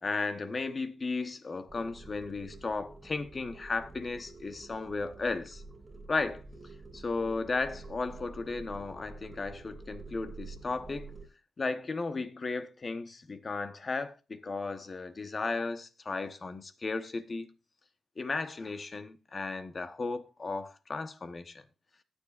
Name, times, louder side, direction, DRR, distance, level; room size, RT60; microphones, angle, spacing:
voice 1, 0.0-5.6 6.1-6.4 6.9-11.1 11.6-17.5 18.2-21.6, left 3 dB, 35° left, 1.0 m, -35 dB
sound 1, 1.7-11.2, right 3 dB, 20° right, 3.1 m, -48 dB
19.0 x 7.3 x 2.4 m
cardioid pair, 110°, 0 cm